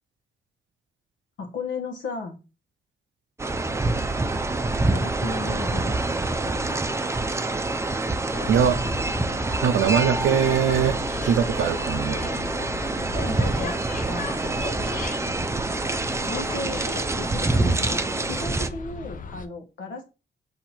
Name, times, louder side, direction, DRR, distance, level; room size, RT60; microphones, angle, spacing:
voice 1, 1.4-2.4 4.9-7.0 13.2-14.7 16.3-16.9 17.2-20.0, left 3 dB, 90° left, 1.1 m, -35 dB
sound 1, 3.4-18.7, right 2 dB, 15° right, 0.4 m, -26 dB
sound 2, 8.3-19.5, left 4 dB, 45° left, 0.6 m, -36 dB
voice 2, 8.5-8.8 9.6-12.3, right 8 dB, 80° right, 0.5 m, -22 dB
4.3 x 2.8 x 4.2 m
cardioid pair, 65°, 19 cm